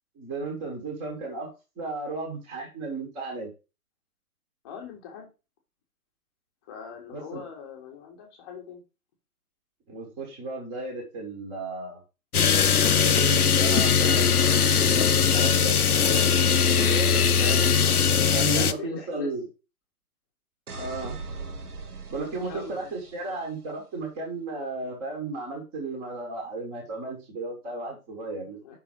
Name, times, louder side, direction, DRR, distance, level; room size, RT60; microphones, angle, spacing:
voice 1, 0.1-1.5 1.8-3.5 7.1-7.4 9.9-12.0 12.8-19.5 20.8-21.1 22.1-28.6, right 2 dB, 10° right, 0 dB, 1.2 m, -34 dB
voice 2, 4.6-5.3 6.7-8.8 18.4-19.3 20.7-21.1 22.4-22.9 28.6-28.8, left 6 dB, 15° left, 1 dB, 1.1 m, -41 dB
sound 1, 12.3-18.7, left 6 dB, 70° left, 0.7 m, -20 dB
sound 2, 20.7-23.5, right 3 dB, 75° right, 1.0 m, -40 dB
5.6 x 3.9 x 6.0 m, 0.29 s
figure-of-eight pair, 135°, 46 cm